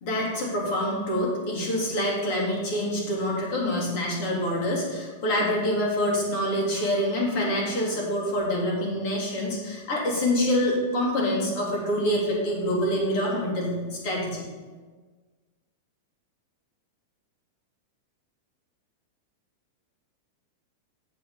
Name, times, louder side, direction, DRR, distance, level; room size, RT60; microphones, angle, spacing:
voice 1, 0.0-14.4, left 1 dB, 45° left, -3 dB, 3.4 m, -26 dB
8.7 x 7.4 x 5.3 m, 1.4 s
supercardioid pair, 160°, 0 cm